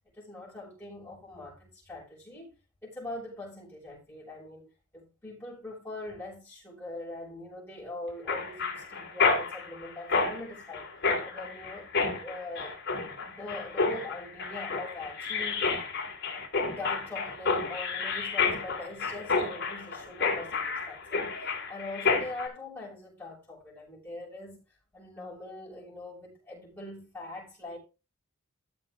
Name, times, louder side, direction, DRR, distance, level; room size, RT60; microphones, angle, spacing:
voice 1, 0.2-2.5 2.8-10.8 11.2-11.9 12.2-12.8 13.2-15.7 16.6-24.6 24.9-27.8, left 2 dB, 10° left, 6.9 m, -42 dB
Mechanisms, 8.3-22.5, left 4 dB, 55° left, 3.4 m, -30 dB
14.5 x 7.0 x 3.8 m
head